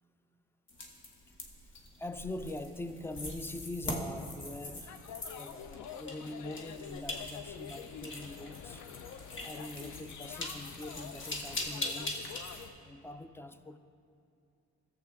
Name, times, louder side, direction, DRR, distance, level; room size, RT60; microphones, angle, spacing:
sound 1, 0.7-12.7, left 2 dB, 40° left, 1.4 m, -42 dB
voice 1, 2.0-8.9 9.4-12.3 12.8-13.8, left 2 dB, 10° left, 0.4 m, -43 dB
sound 2, 4.9-12.7, left 8 dB, 75° left, 0.5 m, -47 dB
14.0 x 7.4 x 3.4 m
cardioid pair, 90°, 30 cm